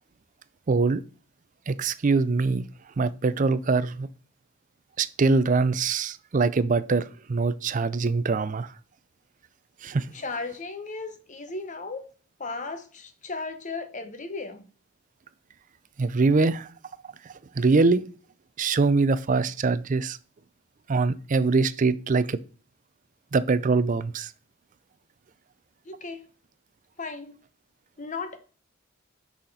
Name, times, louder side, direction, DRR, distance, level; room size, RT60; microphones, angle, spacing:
voice 1, 0.7-1.0 1.7-2.7 3.0-4.1 5.0-7.0 7.3-8.7 9.8-10.1 16.0-16.7 17.6-18.0 18.6-20.2 20.9-22.4 23.3-24.3, right 4 dB, 35° right, 0.4 m, -23 dB
voice 2, 10.1-12.1 12.4-14.7 25.8-26.2 27.0-27.4 28.0-28.4, left 3 dB, 35° left, 0.9 m, -35 dB
6.5 x 5.7 x 4.1 m
head